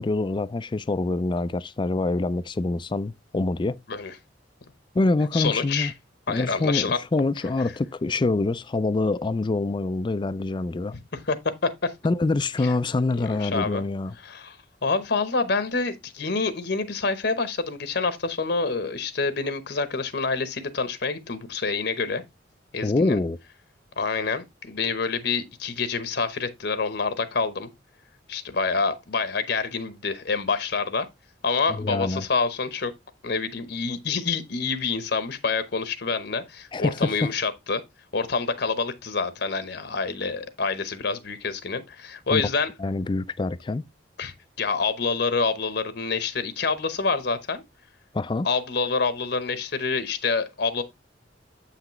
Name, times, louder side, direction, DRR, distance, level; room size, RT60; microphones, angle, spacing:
voice 1, 0.0-3.8 4.9-5.9 6.3-10.9 12.0-14.1 22.8-23.4 31.7-32.3 36.7-37.3 42.3-42.4 42.8-43.8 48.1-48.5, left 2 dB, 25° left, 0.4 m, -25 dB
voice 2, 5.3-5.9 6.3-7.0 11.1-11.4 11.8-11.9 12.6-12.7 13.2-13.8 14.2-14.6 14.8-22.2 22.7-23.2 24.0-27.7 28.3-31.1 31.4-32.9 33.2-37.8 38.1-42.7 44.2-47.6 48.4-50.8, left 4 dB, 65° left, 0.9 m, -27 dB
7.9 x 5.9 x 3.0 m
head